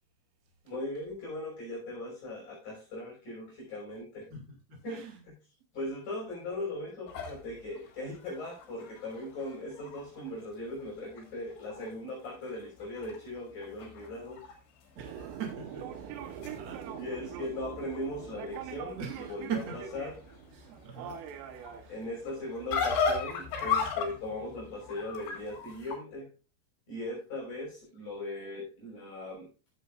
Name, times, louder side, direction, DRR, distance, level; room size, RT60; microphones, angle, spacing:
voice 1, 0.6-4.3 4.8-5.0 5.7-14.4 16.8-19.0 19.3-19.6 19.9-20.4 21.9-26.3 26.9-29.5, left 1 dB, 40° left, 6.9 m, -39 dB
voice 2, 4.3-5.2 14.9-16.9 19.0-19.8 20.5-21.2 21.8-22.0, right 7 dB, 40° right, 1.6 m, -41 dB
sound 1, 7.1-10.3 10.8-10.9 11.2-11.9 12.2-14.5 14.8-15.3 16.0-26.0, left 5 dB, 65° left, 5.0 m, -36 dB
sound 2, 15.0-22.9, right 8 dB, 80° right, 3.6 m, -44 dB
15.5 x 7.9 x 2.5 m
omnidirectional pair, 5.8 m